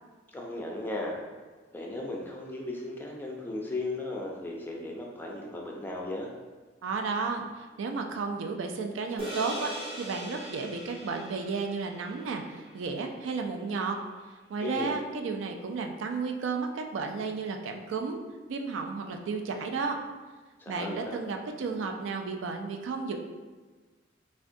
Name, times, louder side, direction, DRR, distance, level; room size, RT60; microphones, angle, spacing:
voice 1, 0.3-1.2 1.7-6.3 14.6-15.0 20.6-21.2, left 2 dB, 10° left, -2 dB, 0.3 m, -36 dB
voice 2, 6.8-14.0 14.5-18.2 18.5-20.0 20.7-23.2, right 4 dB, 90° right, 4 dB, 0.3 m, -33 dB
sound 1, 9.2-13.8, right 1 dB, 30° right, 0.6 m, -41 dB
3.5 x 2.2 x 2.5 m, 1.3 s
head